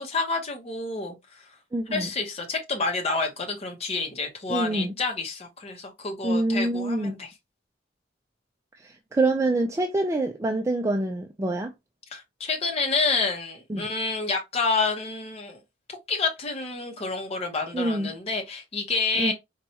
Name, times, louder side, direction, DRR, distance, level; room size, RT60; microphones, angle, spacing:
voice 1, 0.0-1.4 1.9-7.3 12.1-15.6 15.9-19.3, left 4 dB, 35° left, 0.8 m, -29 dB
voice 2, 1.7-2.1 4.5-4.9 6.2-7.2 8.8-11.7 13.7-13.9 17.7-18.1 19.2-19.3, right 2 dB, 15° right, 0.3 m, -26 dB
4.2 x 2.3 x 2.8 m
head